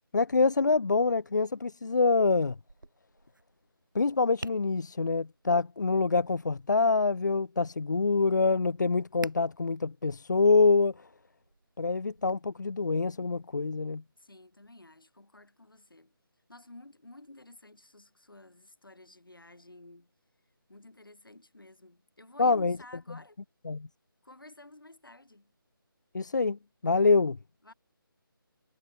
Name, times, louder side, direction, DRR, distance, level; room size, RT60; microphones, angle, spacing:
voice 1, 0.1-2.6 3.9-11.1 11.8-14.0 22.4-22.8 23.7-23.9 26.1-26.6 26.8-27.4, left 4 dB, 50° left, 0.4 m, -25 dB
Tap, 2.6-12.3, right 3 dB, 60° right, 1.9 m, -51 dB
voice 2, 14.2-16.1 16.5-20.1 20.7-23.4 24.2-25.5 27.6-27.7, left 2 dB, 70° left, 4.3 m, -52 dB
figure-of-eight pair, 155°, 12 cm